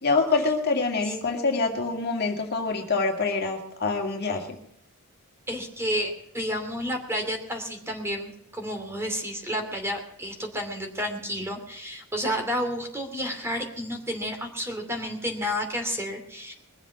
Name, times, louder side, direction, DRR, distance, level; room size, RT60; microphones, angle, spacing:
voice 1, 0.0-4.6, left 3 dB, 45° left, 2 dB, 2.1 m, -25 dB
voice 2, 5.5-16.5, equal, 10° right, 4 dB, 2.7 m, -31 dB
21.5 x 7.4 x 7.1 m, 0.72 s
head